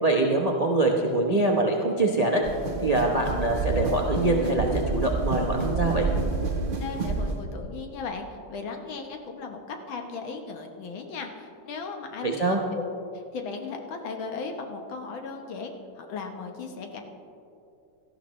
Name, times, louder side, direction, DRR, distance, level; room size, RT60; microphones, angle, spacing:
voice 1, 0.0-2.4 2.8-6.1 12.2-12.6, right 2 dB, 65° right, 0 dB, 0.3 m, -24 dB
sound 1, 2.4-7.4, right 3 dB, 40° right, 0.7 m, -29 dB
voice 2, 6.8-12.8 13.3-17.0, left 4 dB, 70° left, 3 dB, 1.8 m, -37 dB
17.5 x 13.0 x 3.1 m, 2.6 s
omnidirectional pair, 2.3 m